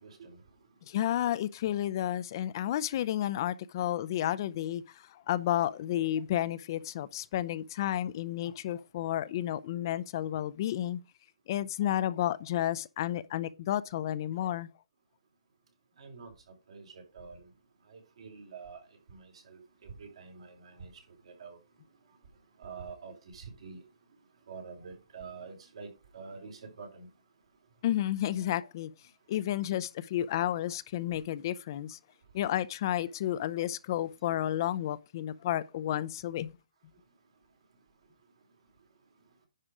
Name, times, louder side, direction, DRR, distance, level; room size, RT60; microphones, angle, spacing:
voice 1, 0.0-0.4 16.0-16.3 16.7-17.4 17.9-18.8 19.1-20.9 21.3-21.6 22.6-23.8 24.5-27.1, right 5 dB, 65° right, 3.7 m, -47 dB
voice 2, 0.9-11.0 11.5-14.7 27.8-28.9 29.3-32.0 32.3-36.5, left 12 dB, 40° left, 0.6 m, -31 dB
10.0 x 4.9 x 4.8 m
hypercardioid pair, 150°, 3 cm